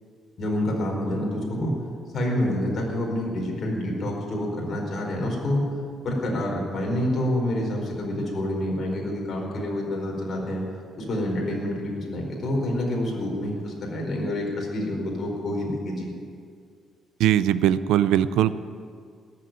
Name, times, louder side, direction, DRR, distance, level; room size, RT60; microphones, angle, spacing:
voice 1, 0.4-1.7 2.1-5.6 6.0-10.6 11.0-16.1, left 1 dB, 50° left, -1 dB, 4.6 m, -27 dB
voice 2, 17.2-18.6, right 11 dB, 90° right, 15 dB, 0.5 m, -20 dB
18.0 x 7.7 x 9.3 m, 2.2 s
cardioid pair, 90°, 0 cm